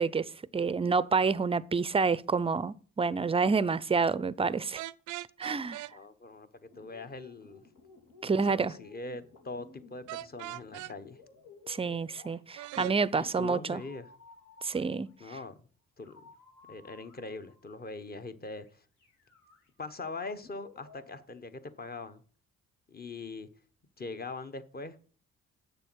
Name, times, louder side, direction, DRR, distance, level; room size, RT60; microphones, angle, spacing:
voice 1, 0.0-4.8 5.4-5.9 8.2-8.7 11.7-13.8 14.6-15.1, right 4 dB, 20° right, 0.4 m, -28 dB
sound 1, 4.8-5.9 10.1-10.9 12.6-13.0, right 16 dB, 90° right, 0.5 m, -39 dB
voice 2, 5.9-7.6 8.2-11.2 12.7-12.8 13.4-14.1 15.2-15.7 16.0-16.2 16.7-18.8 19.8-22.2 22.9-23.5 24.0-25.0, left 3 dB, 30° left, 1.1 m, -42 dB
sound 2, 6.7-12.9 13.6-15.4 16.0-17.7 18.4-18.7 19.0-21.2, left 5 dB, 80° left, 3.3 m, -56 dB
8.0 x 6.7 x 6.2 m
cardioid pair, 90°, 30 cm